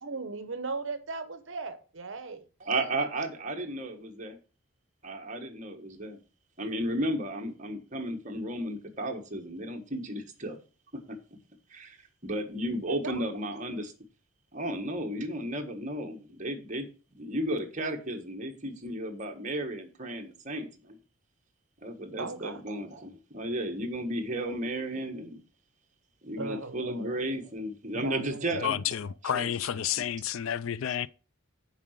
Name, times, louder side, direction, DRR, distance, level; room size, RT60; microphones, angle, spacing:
voice 1, 0.0-2.4 12.9-13.2 22.2-22.6 26.4-27.1 27.9-29.1, right 4 dB, 60° right, 0.9 m, -38 dB
voice 2, 2.6-4.4 5.0-6.2 6.6-10.6 11.7-12.0 12.2-13.9 14.5-16.9 17.1-21.0 21.8-25.4 26.2-28.8 29.2-29.5 29.9-30.1, right 1 dB, 35° right, 1.4 m, -34 dB
voice 3, 28.6-31.1, left 9 dB, 70° left, 0.4 m, -30 dB
7.2 x 4.9 x 6.4 m
head